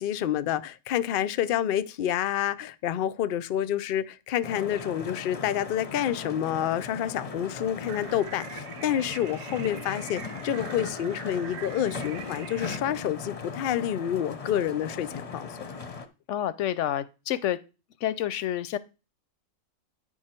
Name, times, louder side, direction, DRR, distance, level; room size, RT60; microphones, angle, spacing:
voice 1, 0.0-15.5, left 10 dB, 90° left, 0.4 m, -28 dB
sound 1, 4.4-16.1, left 4 dB, 35° left, 0.6 m, -38 dB
sound 2, 7.9-12.8, right 10 dB, 70° right, 0.7 m, -44 dB
voice 2, 16.3-17.6 18.0-18.8, left 11 dB, 65° left, 0.8 m, -28 dB
9.7 x 4.7 x 4.3 m
omnidirectional pair, 1.6 m